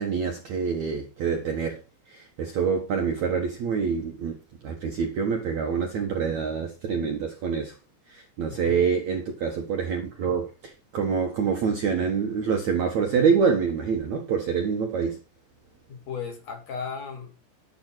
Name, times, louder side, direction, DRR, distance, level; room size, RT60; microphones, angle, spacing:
voice 1, 0.0-1.8 2.1-4.4 4.6-7.8 8.1-15.2, right 6 dB, 60° right, 2.0 m, -26 dB
voice 2, 15.9-17.4, left 6 dB, 45° left, 3.3 m, -36 dB
11.5 x 5.3 x 6.0 m
omnidirectional pair, 5.0 m